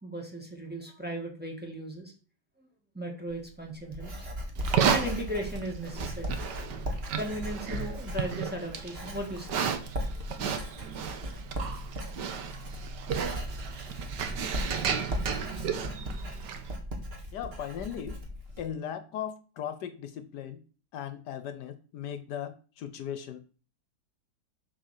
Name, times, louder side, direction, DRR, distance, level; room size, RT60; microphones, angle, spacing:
voice 1, 0.0-2.1 2.6-2.7 2.9-4.5 4.9-6.4 7.1-9.9, right 1 dB, 5° right, 0 dB, 1.9 m, -37 dB
Writing, 3.3-18.7, equal, 35° right, 1.9 m, -37 dB
Livestock farm animals working animals, 4.6-16.8, right 7 dB, 85° right, 1.6 m, -33 dB
voice 2, 17.3-18.1 18.6-20.6 20.9-23.4, left 9 dB, 75° left, 10 dB, 1.3 m, -37 dB
7.8 x 4.5 x 6.6 m, 0.37 s
omnidirectional pair, 1.8 m